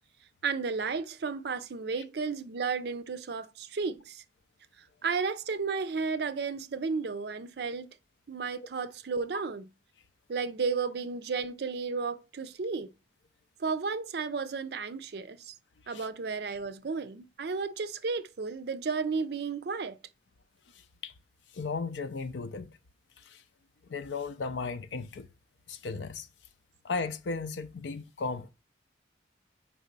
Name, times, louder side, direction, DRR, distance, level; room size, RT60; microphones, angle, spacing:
voice 1, 0.4-4.2 5.0-7.9 8.3-9.7 10.3-12.9 13.6-15.5 15.9-20.0, right 5 dB, 60° right, 0.5 m, -33 dB
voice 2, 21.5-22.7 23.2-23.4 23.9-25.3 25.7-26.3 26.8-28.5, left 4 dB, 70° left, 0.5 m, -35 dB
4.6 x 4.0 x 5.2 m
head